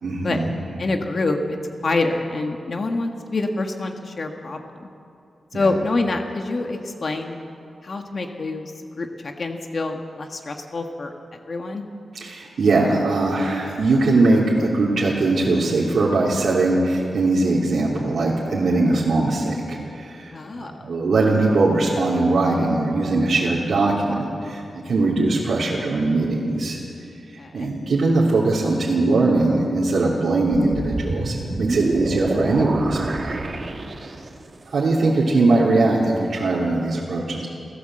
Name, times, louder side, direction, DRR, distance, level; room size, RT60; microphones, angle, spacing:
voice 1, 0.0-0.5 5.5-5.7 12.1-26.8 27.5-33.4 34.7-37.5, right 2 dB, 70° right, -6 dB, 3.1 m, -21 dB
voice 2, 0.8-1.4 1.8-4.9 5.5-7.4 7.8-11.8 20.3-20.7 27.4-27.7, left 3 dB, 45° left, 4 dB, 1.4 m, -26 dB
sound 1, 30.5-34.5, right 2 dB, 40° right, 1.7 m, -27 dB
28.5 x 15.0 x 7.7 m, 2.6 s
wide cardioid pair, 165°, 0 cm